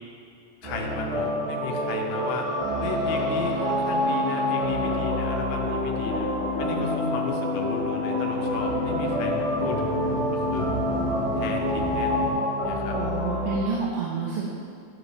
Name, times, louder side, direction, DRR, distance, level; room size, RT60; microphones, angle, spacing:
voice 1, 0.6-2.5 2.8-6.3 6.6-10.7 11.4-12.4 12.6-13.0, left 4 dB, 80° left, 2 dB, 2.4 m, -34 dB
sound 1, 0.6-13.6, equal, 60° right, 3.3 m, -28 dB
sound 2, 2.0-12.3, left 5 dB, 60° left, 0.6 m, -31 dB
voice 2, 12.9-14.5, right 4 dB, 85° right, -4 dB, 2.5 m, -29 dB
11.5 x 5.0 x 4.1 m, 2.5 s
omnidirectional pair, 3.9 m